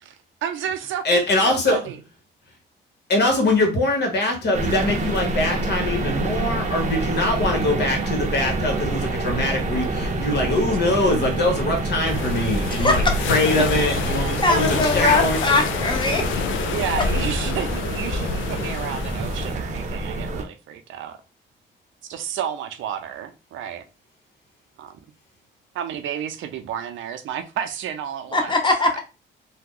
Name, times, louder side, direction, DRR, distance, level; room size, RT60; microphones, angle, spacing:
voice 1, 0.0-2.0 13.5-13.7 14.2-14.3 16.7-21.2 22.1-23.8 24.8-24.9 25.7-28.6 28.9-29.0, right 9 dB, 75° right, 0.5 m, -31 dB
voice 2, 1.0-1.8 3.1-13.0 13.3-15.4 17.2-17.3, left 2 dB, 60° left, 1.3 m, -22 dB
sound 1, 4.5-20.4, right 2 dB, 35° right, 0.7 m, -27 dB
sound 2, 12.1-19.5, left 7 dB, 75° left, 0.4 m, -28 dB
voice 3, 14.4-16.2 28.3-29.0, left 2 dB, 25° left, 0.9 m, -20 dB
2.8 x 2.2 x 3.7 m
cardioid pair, 90°, 20 cm